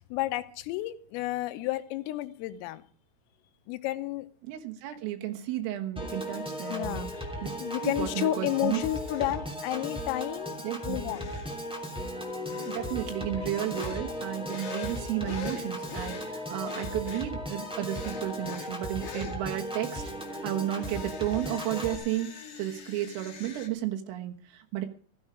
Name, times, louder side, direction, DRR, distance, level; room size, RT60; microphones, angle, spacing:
voice 1, 0.0-2.8 3.7-4.3 6.7-7.3 7.6-11.3, left 15 dB, 80° left, 12 dB, 3.5 m, -32 dB
voice 2, 4.4-7.1 7.8-8.8 10.6-11.2 12.6-20.0 20.4-24.9, right 13 dB, 80° right, 4 dB, 4.0 m, -33 dB
Piano / Organ, 6.0-22.0, equal, 5° right, 0.9 m, -36 dB
sound 1, 9.1-9.4 11.1-11.5 12.5-12.8 13.7-14.0 14.5-16.3 16.6-17.3 17.9-18.7 19.0-19.4 20.8-23.7, left 7 dB, 45° left, 2.8 m, -43 dB
16.0 x 13.5 x 4.9 m, 0.42 s
omnidirectional pair, 6.0 m